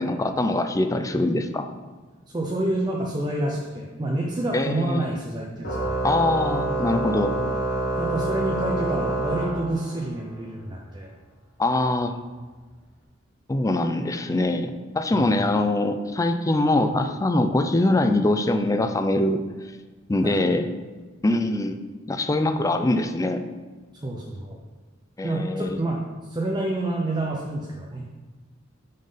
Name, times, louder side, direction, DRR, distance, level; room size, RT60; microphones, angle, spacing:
voice 1, 0.0-1.7 4.5-5.1 6.0-7.3 11.6-12.2 13.5-19.4 20.1-20.7 21.2-21.8 22.1-23.4 25.2-25.8, left 2 dB, 15° left, 7 dB, 0.4 m, -23 dB
voice 2, 2.3-6.0 8.0-11.1 15.1-15.4 20.2-20.4 24.0-24.6 25.2-28.0, right 1 dB, 20° right, -2 dB, 0.6 m, -28 dB
Organ, 5.6-10.2, right 2 dB, 55° left, 1.5 m, -27 dB
5.3 x 3.7 x 5.5 m, 1.4 s
head